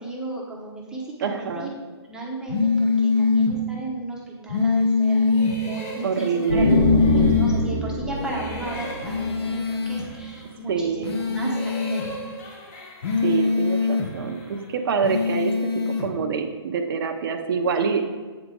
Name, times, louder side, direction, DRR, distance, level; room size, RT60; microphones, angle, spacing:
voice 1, 0.0-1.7 2.0-12.1, right 2 dB, 5° right, -4 dB, 0.9 m, -34 dB
voice 2, 1.2-1.7 6.0-6.7 10.7-11.1 13.2-18.0, right 5 dB, 55° right, 3 dB, 0.6 m, -26 dB
sound 1, 2.5-3.6 4.5-5.6 6.5-7.6 9.0-10.1 11.0-12.1 13.0-14.1 15.0-16.1, left 5 dB, 65° left, 1.1 m, -22 dB
sound 2, 5.1-7.8 8.1-10.6 11.1-14.8, left 1 dB, 35° left, 1.5 m, -40 dB
sound 3, 6.5-10.1, equal, 85° left, 1.3 m, -24 dB
7.9 x 4.9 x 3.8 m, 1.4 s
hypercardioid pair, 140°, 14 cm